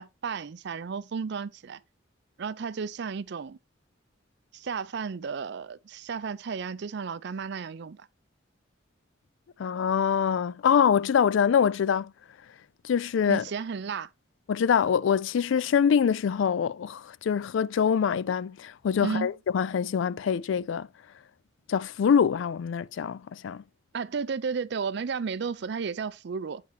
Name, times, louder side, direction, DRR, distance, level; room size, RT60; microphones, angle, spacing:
voice 1, 0.0-1.8 2.4-3.6 4.5-8.1 13.3-14.1 19.0-19.3 23.9-26.6, right 5 dB, 60° right, 0.4 m, -33 dB
voice 2, 9.6-12.1 12.8-13.5 14.5-20.9 21.7-23.6, left 7 dB, 70° left, 0.3 m, -24 dB
9.3 x 4.7 x 3.3 m
head